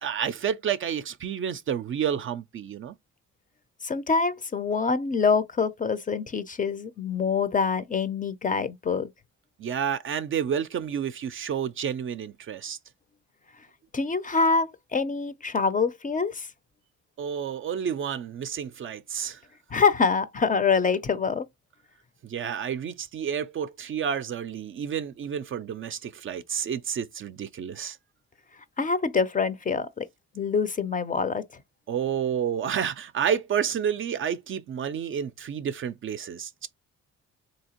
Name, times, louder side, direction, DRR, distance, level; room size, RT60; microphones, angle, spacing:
voice 1, 0.0-3.0 9.6-12.8 17.2-19.4 22.2-28.0 31.9-36.7, right 8 dB, 45° right, 0.4 m, -30 dB
voice 2, 3.8-9.1 13.9-16.5 19.7-21.5 28.8-30.1 30.4-31.4, left 5 dB, 25° left, 0.5 m, -25 dB
3.4 x 2.8 x 2.9 m
cardioid pair, 90°, 30 cm